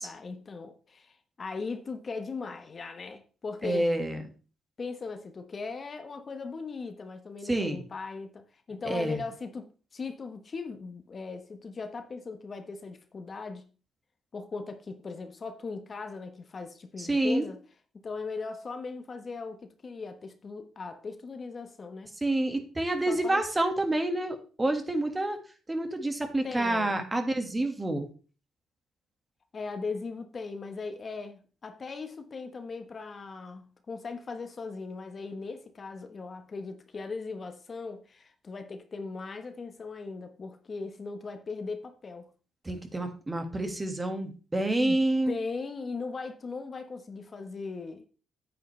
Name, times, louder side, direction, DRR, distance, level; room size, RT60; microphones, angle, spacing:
voice 1, 0.0-3.9 4.8-13.7 14.3-17.6 17.9-22.1 23.1-23.4 26.4-27.1 29.5-42.3 44.8-45.0 45.3-48.0, left 4 dB, 40° left, 1.1 m, -39 dB
voice 2, 3.6-4.2 7.5-7.8 8.8-9.2 17.0-17.4 22.2-25.4 25.7-28.1 42.6-45.3, right 1 dB, 20° right, 1.7 m, -28 dB
9.1 x 8.4 x 3.2 m
cardioid pair, 90°, 0 cm